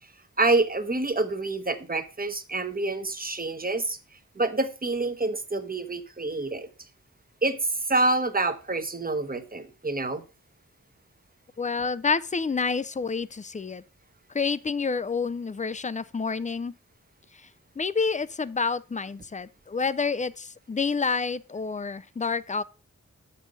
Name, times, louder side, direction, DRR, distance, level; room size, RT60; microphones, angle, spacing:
voice 1, 0.4-4.0 4.4-6.7 7.4-10.2, right 2 dB, 30° right, 0.9 m, -27 dB
voice 2, 11.6-13.8 14.3-16.7 17.8-22.6, left 4 dB, 25° left, 0.4 m, -28 dB
7.5 x 5.5 x 5.0 m
wide cardioid pair, 90°, 30 cm